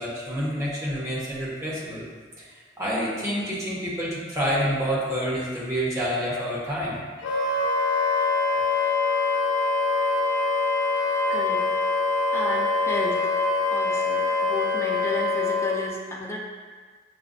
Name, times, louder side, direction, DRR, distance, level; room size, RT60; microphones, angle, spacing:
voice 1, 0.0-2.0 2.4-7.0, equal, 15° right, -7 dB, 0.8 m, -28 dB
Wind instrument woodwind instrument, 7.2-15.7, left 3 dB, 80° left, 0.6 m, -24 dB
voice 2, 11.3-11.7 12.3-13.3 13.7-16.4, left 1 dB, 15° left, -2 dB, 0.5 m, -33 dB
6.4 x 2.2 x 2.5 m, 1.5 s
head